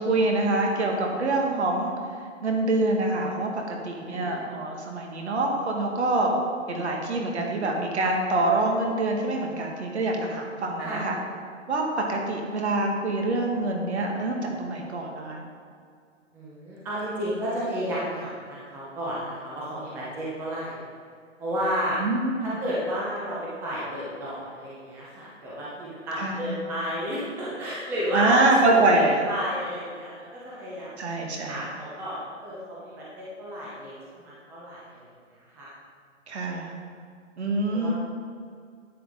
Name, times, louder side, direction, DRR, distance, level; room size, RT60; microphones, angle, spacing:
voice 1, 0.0-1.9 2.4-6.3 6.7-11.2 11.7-15.5 22.0-22.5 26.2-26.5 28.1-29.2 31.0-31.6 36.3-36.7 37.4-37.9, right 2 dB, 55° right, 1 dB, 1.9 m, -25 dB
voice 2, 4.0-4.5 10.8-11.0 16.3-20.8 21.4-22.0 22.4-28.4 28.7-30.9 31.5-35.7 37.7-37.9, equal, 5° right, -7 dB, 0.8 m, -32 dB
11.0 x 7.9 x 3.8 m, 2.2 s
hypercardioid pair, 150°, 39 cm